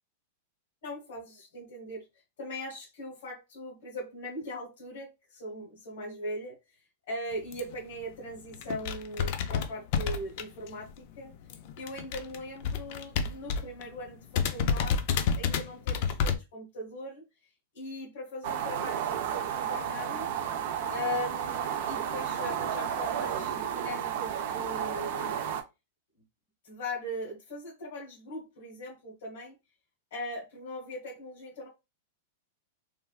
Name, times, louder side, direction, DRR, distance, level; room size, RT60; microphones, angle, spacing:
voice 1, 0.8-2.1 2.4-6.8 7.1-11.3 11.8-17.2 17.7-20.3 20.9-25.4 26.6-29.6 30.1-31.7, left 1 dB, 55° left, 1.1 m, -39 dB
sound 1, 7.5-7.7 8.2-8.3 8.5-10.9 11.1-13.8 14.1-14.2 14.3-16.3, left 6 dB, 40° left, 0.3 m, -29 dB
sound 2, 18.4-25.6, right 9 dB, 45° right, 0.4 m, -32 dB
3.3 x 2.4 x 2.3 m
supercardioid pair, 175°, 0 cm